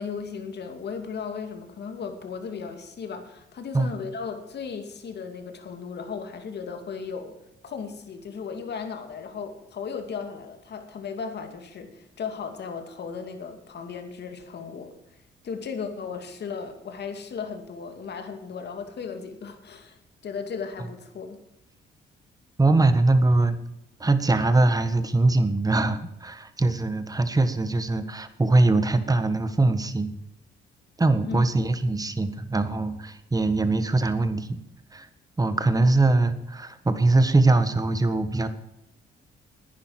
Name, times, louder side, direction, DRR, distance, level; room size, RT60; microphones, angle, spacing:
voice 1, 0.0-7.3 7.6-14.9 15.4-21.4 31.2-31.4, left 6 dB, 60° left, 6 dB, 2.5 m, -36 dB
voice 2, 22.6-23.6 24.0-30.1 31.0-34.6 34.9-35.1 35.4-38.5, right 2 dB, 20° right, 11 dB, 1.5 m, -22 dB
10.5 x 10.0 x 7.6 m, 0.84 s
cardioid pair, 90°, 20 cm